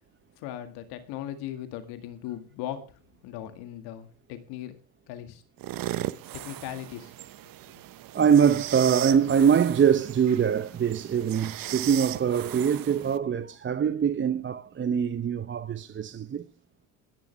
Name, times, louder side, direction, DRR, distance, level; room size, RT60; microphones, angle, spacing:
voice 1, 0.4-2.8 3.2-4.7 5.1-5.4 6.3-7.1, left 11 dB, 65° left, 2.0 m, -38 dB
sound 1, 5.6-13.2, right 14 dB, 55° right, 1.0 m, -37 dB
voice 2, 8.1-16.4, right 7 dB, 30° right, 0.8 m, -23 dB
21.0 x 10.5 x 3.4 m
hypercardioid pair, 65°, 42 cm